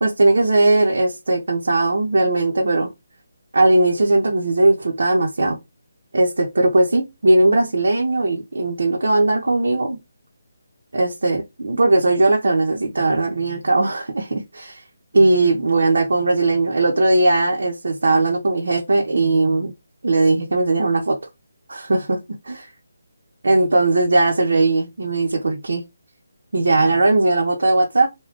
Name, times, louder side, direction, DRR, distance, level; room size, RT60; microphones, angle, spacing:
voice 1, 0.0-2.9 3.5-5.6 6.1-10.0 10.9-14.8 15.1-19.7 20.0-21.2 21.7-22.2 22.5-22.6 23.4-25.8 26.5-28.1, right 2 dB, 75° right, 0.7 m, -18 dB
2.4 x 2.2 x 3.6 m
hypercardioid pair, 165°, 0 cm